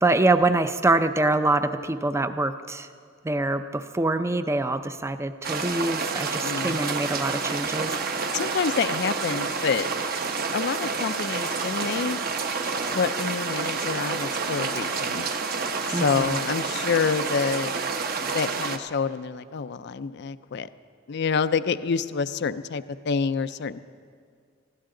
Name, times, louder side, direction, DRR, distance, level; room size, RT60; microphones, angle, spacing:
voice 1, 0.0-2.9 3.2-8.1 15.9-16.4, right 2 dB, 15° right, 10 dB, 0.5 m, -25 dB
sound 1, 5.4-18.8, right 4 dB, 45° right, 0.9 m, -29 dB
voice 2, 6.4-6.8 8.3-9.9 10.5-12.2 12.9-15.3 15.9-17.8 18.3-20.7 21.1-23.8, left 5 dB, 55° left, 14 dB, 0.4 m, -27 dB
19.5 x 15.5 x 3.8 m, 2.2 s
head